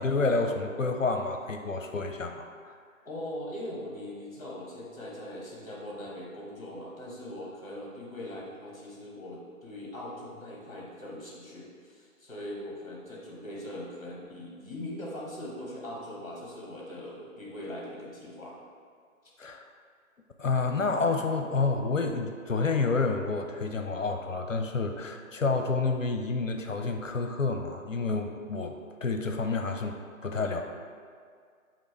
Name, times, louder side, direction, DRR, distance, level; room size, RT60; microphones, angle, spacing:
voice 1, 0.0-2.8 19.4-19.6 20.4-30.6, left 3 dB, 65° left, 4 dB, 0.6 m, -29 dB
voice 2, 3.0-18.5, left 1 dB, 25° left, -4 dB, 1.5 m, -41 dB
7.4 x 3.0 x 4.4 m, 2.1 s
figure-of-eight pair, 155°, 42 cm